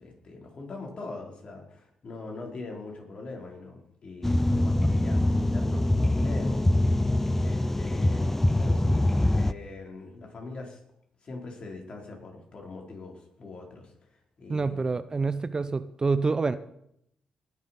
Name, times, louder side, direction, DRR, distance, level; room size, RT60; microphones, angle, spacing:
voice 1, 0.0-6.9 7.4-9.1 9.3-10.8 11.2-14.8, left 3 dB, 50° left, 1 dB, 4.5 m, -42 dB
sound 1, 4.2-9.5, left 1 dB, 10° left, 0.5 m, -24 dB
voice 2, 14.5-16.6, right 4 dB, 35° right, 14 dB, 0.7 m, -27 dB
19.5 x 7.2 x 6.0 m, 0.75 s
cardioid pair, 65°, 2 cm